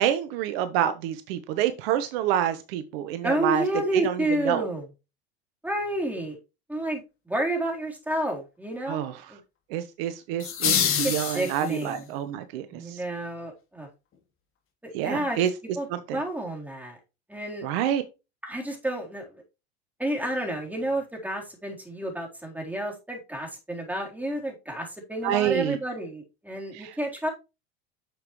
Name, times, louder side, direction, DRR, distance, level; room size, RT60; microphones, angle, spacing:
voice 1, 0.0-3.6 3.9-4.7 8.9-9.2 9.7-13.0 14.9-15.5 15.9-16.2 17.6-18.0 25.2-25.8 26.7-26.9, right 10 dB, 65° right, 11 dB, 1.1 m, -27 dB
voice 2, 3.2-4.8 5.6-6.4 6.7-9.4 11.0-12.0 12.7-13.9 14.8-15.4 15.8-15.9 16.1-17.0 17.3-17.7 18.4-19.4 20.0-27.3, right 1 dB, 5° right, 0 dB, 3.8 m, -30 dB
sound 1, 10.4-12.0, left 8 dB, 40° left, 3.1 m, -26 dB
9.3 x 7.0 x 3.1 m, 0.28 s
hypercardioid pair, 80°, 32 cm